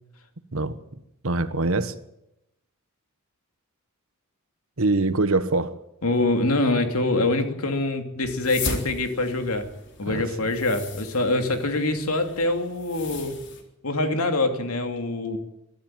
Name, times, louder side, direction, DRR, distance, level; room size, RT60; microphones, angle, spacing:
voice 1, 1.2-2.0 4.8-5.8 10.1-10.3, right 2 dB, 70° right, 1.3 m, -24 dB
voice 2, 6.0-9.7 10.0-13.4 13.8-15.4, left 2 dB, 85° left, 2.9 m, -24 dB
sound 1, 8.2-13.6, left 4 dB, 55° left, 3.8 m, -37 dB
22.5 x 13.5 x 9.2 m
head